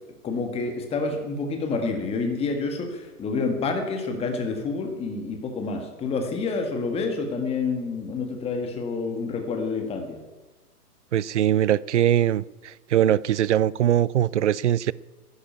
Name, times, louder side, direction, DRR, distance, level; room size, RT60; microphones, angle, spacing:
voice 1, 0.2-10.2, left 4 dB, 15° left, 1.7 m, -28 dB
voice 2, 11.1-14.9, right 11 dB, 50° right, 0.5 m, -22 dB
11.5 x 10.5 x 9.2 m
hypercardioid pair, 135°, 46 cm